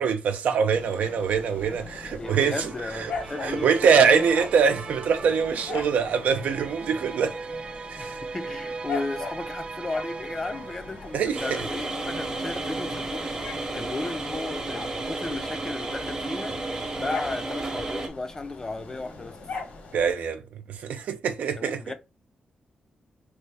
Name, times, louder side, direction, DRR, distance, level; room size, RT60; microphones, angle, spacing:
voice 1, 0.0-2.7 2.9-3.1 3.4-7.4 7.9-8.2 11.1-11.4 19.9-20.4 20.7-21.8, right 6 dB, 85° right, 0.6 m, -23 dB
sound 1, 0.7-20.1, left 4 dB, 75° left, 1.0 m, -40 dB
voice 2, 2.2-4.2 8.0-13.3 13.7-19.4 21.6-21.9, left 2 dB, 20° left, 0.4 m, -35 dB
sound 2, 2.2-12.0, right 4 dB, 40° right, 0.4 m, -39 dB
sound 3, 11.3-18.1, right 2 dB, 25° right, 0.8 m, -32 dB
3.1 x 2.5 x 3.3 m
wide cardioid pair, 140°, 3 cm